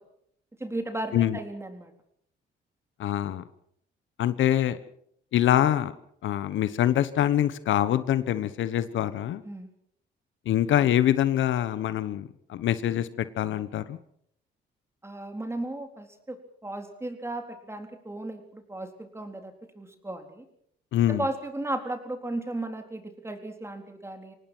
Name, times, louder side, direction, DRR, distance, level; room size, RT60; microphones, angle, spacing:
voice 1, 0.6-1.9 9.4-9.7 15.0-20.5 21.1-24.3, right 2 dB, 15° right, 5 dB, 4.0 m, -35 dB
voice 2, 3.0-3.4 4.2-4.8 5.3-5.9 6.2-9.4 10.5-13.1 13.4-14.0 20.9-21.2, left 11 dB, 75° left, 14 dB, 1.2 m, -24 dB
25.0 x 18.5 x 6.2 m, 0.69 s
cardioid pair, 90°, 20 cm